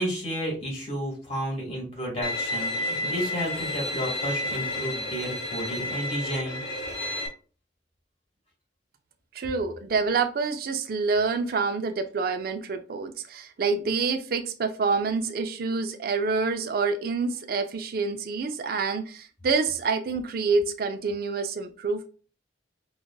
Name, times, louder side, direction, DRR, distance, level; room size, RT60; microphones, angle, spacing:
voice 1, 0.0-6.6, equal, 35° left, -4 dB, 1.9 m, -32 dB
Bowed string instrument, 2.2-7.3, left 1 dB, 70° left, 0.9 m, -31 dB
voice 2, 9.3-22.1, right 4 dB, 55° right, 7 dB, 0.4 m, -27 dB
5.1 x 2.4 x 2.3 m, 0.36 s
head